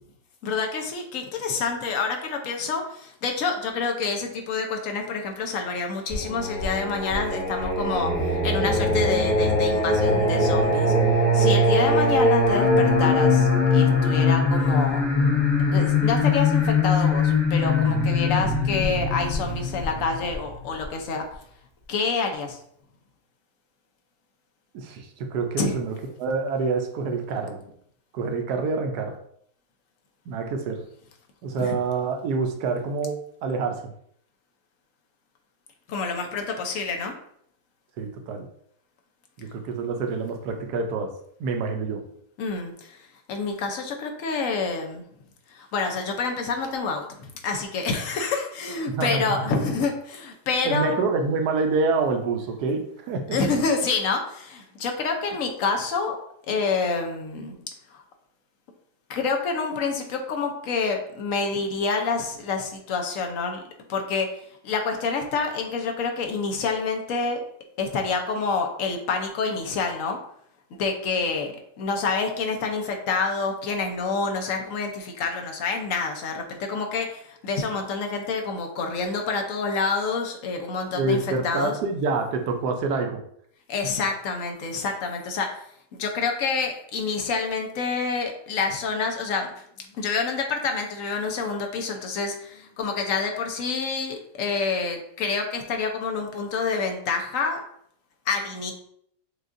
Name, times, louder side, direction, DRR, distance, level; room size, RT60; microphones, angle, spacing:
voice 1, 0.4-10.9 11.3-15.0 15.7-21.2 21.9-22.6 25.6-25.7 31.6-31.7 35.9-37.1 42.4-43.0 43.3-45.0 45.5-51.0 53.3-56.2 56.5-57.5 59.1-63.6 63.9-64.3 64.6-67.4 67.8-70.2 70.7-81.7 83.7-85.5 86.0-89.5 89.9-97.6 98.3-98.7, left 4 dB, 60° left, 3 dB, 0.9 m, -27 dB
Singing, 6.1-20.8, left 2 dB, 45° left, 1.7 m, -21 dB
voice 2, 24.7-27.6 28.1-29.2 30.3-30.8 31.4-33.8 38.0-38.5 39.4-41.1 41.4-42.0 48.9-49.4 50.6-53.4 80.9-83.2, right 4 dB, 75° right, 5 dB, 1.2 m, -27 dB
6.3 x 2.4 x 2.5 m, 0.68 s
omnidirectional pair, 1.8 m